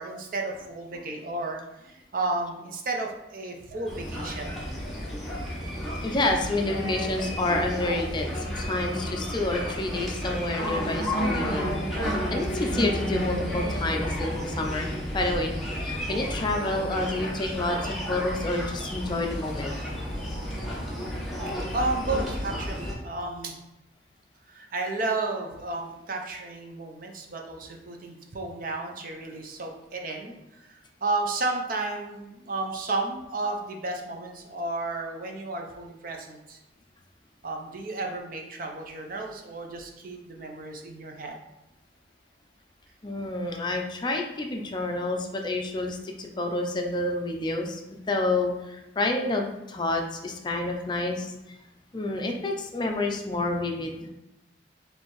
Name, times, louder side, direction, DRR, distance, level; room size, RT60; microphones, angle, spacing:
voice 1, 0.0-4.6 9.9-10.1 18.8-18.9 21.7-23.6 24.5-36.6 37.4-41.4, right 2 dB, 50° right, 2 dB, 0.6 m, -33 dB
sound 1, 3.9-22.9, equal, ahead, 1.0 m, -31 dB
voice 2, 6.0-11.7 12.0-15.5 15.8-17.8 18.1-19.7 43.0-47.8 48.1-51.6 51.9-54.1, left 2 dB, 25° left, 2 dB, 0.4 m, -29 dB
4.4 x 3.3 x 3.1 m, 0.94 s
head